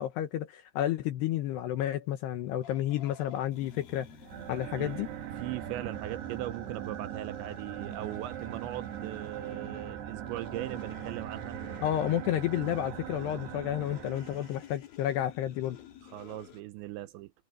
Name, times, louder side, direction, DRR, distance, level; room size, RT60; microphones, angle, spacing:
voice 1, 0.0-4.1 4.5-5.1 11.8-15.8, left 12 dB, 75° left, 2.8 m, -31 dB
sound 1, 2.6-16.6, left 9 dB, 50° left, 4.0 m, -53 dB
sound 2, 4.2-14.7, right 10 dB, 65° right, 3.5 m, -40 dB
voice 2, 5.4-11.6 16.0-17.3, right 15 dB, 80° right, 2.8 m, -39 dB
omnidirectional pair, 5.6 m